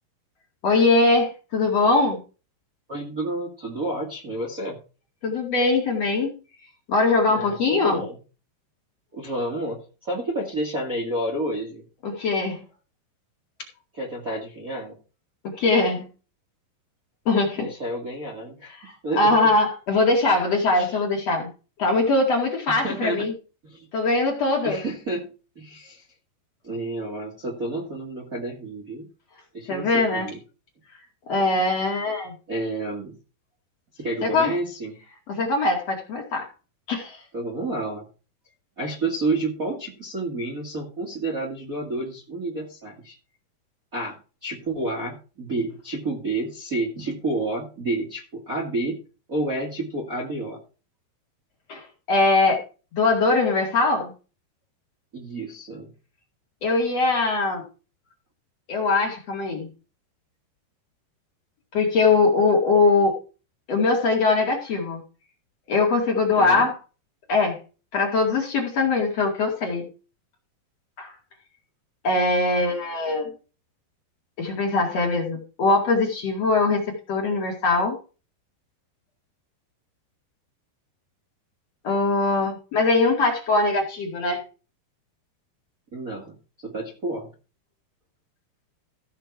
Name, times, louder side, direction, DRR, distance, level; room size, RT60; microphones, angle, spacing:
voice 1, 0.6-2.2 5.2-6.3 6.9-8.0 12.0-12.6 15.4-16.1 17.3-17.7 19.2-21.5 21.8-23.3 23.9-24.8 29.7-30.3 31.3-32.3 34.2-34.5 35.3-36.5 36.9-37.2 51.7-52.6 52.9-54.1 56.6-57.6 58.7-59.7 61.7-63.1 63.7-65.0 65.7-66.8 67.3-67.6 67.9-69.9 71.0-71.1 72.0-73.3 74.4-78.0 81.8-84.4, left 3 dB, 45° left, 0 dB, 2.8 m, -21 dB
voice 2, 2.9-4.8 7.2-8.2 9.1-11.8 13.9-14.9 17.6-19.4 20.7-21.0 22.8-23.3 23.6-23.9 24.6-26.0 26.6-29.1 29.5-30.4 32.5-33.2 34.0-35.0 37.3-38.1 38.8-43.1 43.9-49.0 49.3-50.6 55.1-55.9 66.3-66.7 85.9-86.3 86.6-87.3, right 2 dB, 30° right, -1 dB, 1.6 m, -30 dB
15.0 x 5.8 x 4.7 m, 0.34 s
omnidirectional pair, 4.7 m